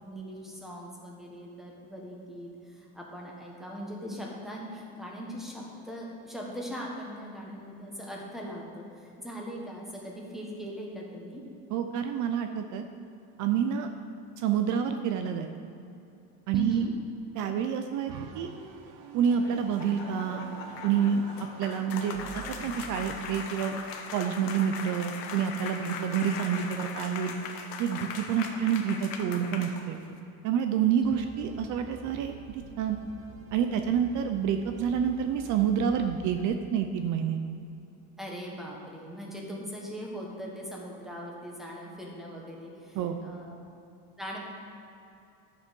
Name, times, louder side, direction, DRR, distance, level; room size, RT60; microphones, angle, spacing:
voice 1, 0.0-11.4 16.5-16.9 28.5-28.6 38.2-43.6 44.2-44.4, equal, ahead, -2 dB, 1.5 m, -40 dB
voice 2, 11.7-12.8 13.4-13.9 14.4-15.5 16.5-16.8 17.3-18.5 19.1-20.4 20.8-21.2 21.6-23.8 24.1-27.4 27.8-30.0 30.4-33.0 33.5-37.4 43.0-43.2, right 8 dB, 60° right, 7 dB, 0.6 m, -28 dB
sound 1, 18.1-23.2, right 5 dB, 80° right, 0.9 m, -45 dB
sound 2, 19.2-30.2, left 6 dB, 80° left, 1.2 m, -40 dB
sound 3, 31.0-36.5, right 3 dB, 40° right, 0.9 m, -49 dB
11.0 x 7.0 x 5.3 m, 2.8 s
cardioid pair, 160°, 35 cm